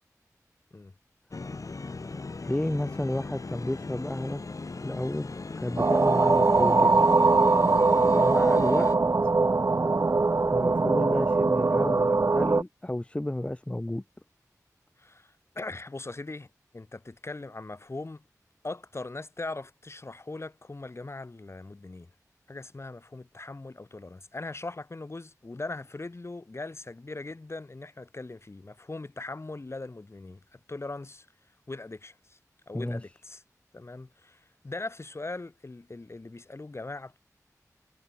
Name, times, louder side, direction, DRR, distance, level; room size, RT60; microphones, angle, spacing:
sound 1, 1.3-9.0, left 3 dB, 60° left, 5.4 m, -38 dB
voice 1, 2.4-4.4 4.8-7.0 8.1-8.9 9.2-9.3 10.5-14.0 32.7-33.0, left 1 dB, 20° left, 1.0 m, -32 dB
sound 2, 5.8-12.6, right 3 dB, 50° right, 0.8 m, -22 dB
voice 2, 15.0-16.5 16.7-18.2 18.6-22.1 22.5-31.3 31.7-32.4 32.7-33.4 33.7-37.2, left 2 dB, 45° left, 3.0 m, -40 dB
wide cardioid pair, 80°, 6 cm